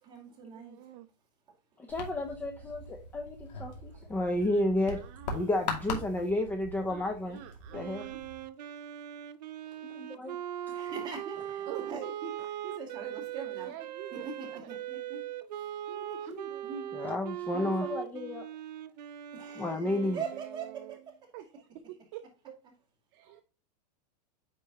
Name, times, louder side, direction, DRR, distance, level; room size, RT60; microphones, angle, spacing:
voice 1, 0.0-0.8 10.7-13.7 14.1-15.2 15.5-17.0 19.3-21.2 23.2-23.4, right 5 dB, 20° right, 2.3 m, -42 dB
voice 2, 0.5-1.1 3.9-4.0 4.4-5.5 5.8-6.0 6.9-8.2 11.7-12.0 13.4-14.7 16.2-16.7 19.8-21.0 21.3-22.6 23.1-23.4, right 13 dB, 40° right, 0.5 m, -48 dB
voice 3, 1.8-5.0 5.3-7.4 7.7-8.1 9.9-10.4 16.9-18.5 19.6-20.2, left 1 dB, 10° left, 0.5 m, -32 dB
sound 1, 1.9-8.4, left 3 dB, 85° left, 2.4 m, -41 dB
Wind instrument woodwind instrument, 7.7-21.1, right 11 dB, 80° right, 0.7 m, -40 dB
9.3 x 4.5 x 2.9 m
supercardioid pair, 155°, 21 cm